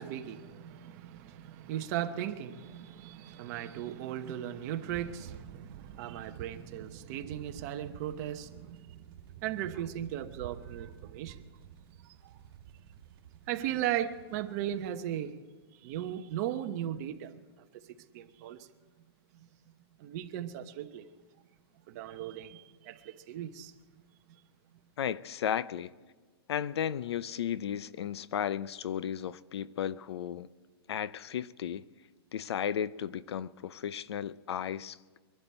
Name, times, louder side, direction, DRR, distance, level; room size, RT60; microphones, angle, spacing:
voice 1, 0.0-9.0 9.4-11.4 12.0-12.3 13.5-15.3 15.8-17.4 17.9-18.7 20.0-21.1 21.9-23.7, right 11 dB, 40° right, 1.0 m, -37 dB
sound 1, 4.9-15.2, right 9 dB, 55° right, 1.8 m, -50 dB
voice 2, 25.0-25.9 26.5-30.5 30.9-31.9 32.3-35.0, left 9 dB, 80° left, 0.6 m, -34 dB
23.0 x 12.0 x 4.5 m
hypercardioid pair, 155°, 14 cm